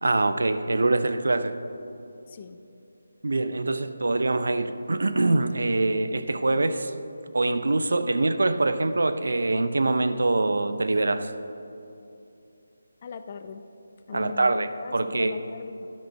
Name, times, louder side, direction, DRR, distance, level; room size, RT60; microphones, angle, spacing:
voice 1, 0.0-1.6 3.2-6.9 7.3-11.3 14.1-15.4, right 2 dB, 70° right, 11 dB, 0.5 m, -24 dB
voice 2, 2.3-2.6 13.0-13.6 14.1-15.9, left 5 dB, 35° left, 10 dB, 0.4 m, -39 dB
12.5 x 5.1 x 4.5 m, 2.8 s
figure-of-eight pair, 155°, 0 cm